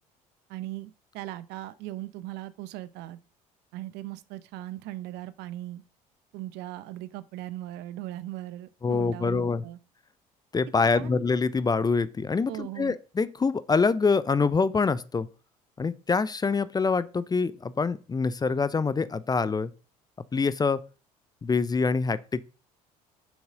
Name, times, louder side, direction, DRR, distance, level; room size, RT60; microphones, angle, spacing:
voice 1, 0.5-3.2 3.7-5.8 6.3-9.8 10.9-11.3 12.5-13.0, right 15 dB, 60° right, 0.7 m, -38 dB
voice 2, 8.8-9.6 10.5-15.3 15.8-19.7 20.3-20.8 21.4-22.4, left 4 dB, 20° left, 0.6 m, -25 dB
7.1 x 6.3 x 5.0 m
hypercardioid pair, 60°, 20 cm